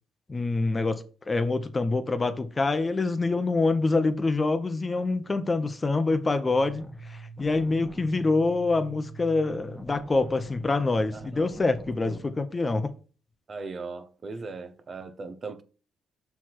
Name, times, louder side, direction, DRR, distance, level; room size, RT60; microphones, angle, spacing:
voice 1, 0.3-12.9, left 3 dB, 25° left, 0.8 m, -26 dB
sound 1, 6.5-12.2, right 1 dB, ahead, 1.4 m, -43 dB
voice 2, 11.1-11.5 12.1-12.2 13.5-15.6, right 4 dB, 40° right, 0.9 m, -38 dB
5.8 x 4.7 x 4.3 m
cardioid pair, 90°, 0 cm